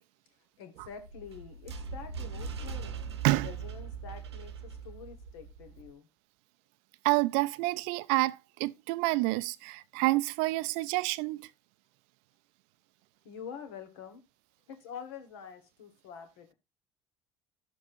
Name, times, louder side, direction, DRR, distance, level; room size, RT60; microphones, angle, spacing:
voice 1, 0.6-3.0 3.4-6.1 13.2-14.2 14.7-16.5, left 7 dB, 70° left, 1.7 m, -46 dB
sound 1, 0.8-5.9, right 5 dB, 80° right, 0.8 m, -41 dB
voice 2, 7.0-11.5, right 20 dB, 60° right, 0.4 m, -28 dB
12.0 x 7.2 x 2.6 m
figure-of-eight pair, 60°, 14 cm